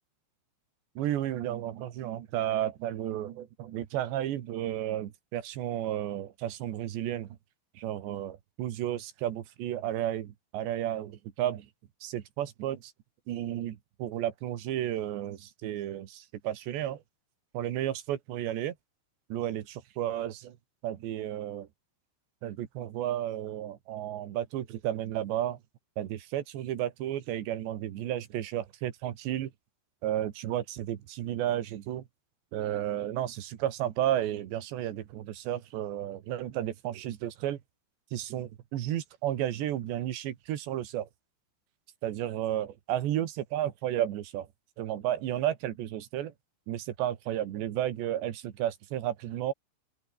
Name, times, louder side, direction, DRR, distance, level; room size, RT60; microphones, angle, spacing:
voice 1, 1.0-7.4 7.8-11.7 12.0-12.9 13.3-17.0 17.5-18.8 19.3-20.6 20.8-21.7 22.4-25.6 26.0-29.5 30.0-32.0 32.5-37.6 38.1-41.1 42.0-44.5 44.8-46.3 46.7-49.5, right 12 dB, 65° right, 3.7 m, -32 dB
open air
omnidirectional pair, 5.8 m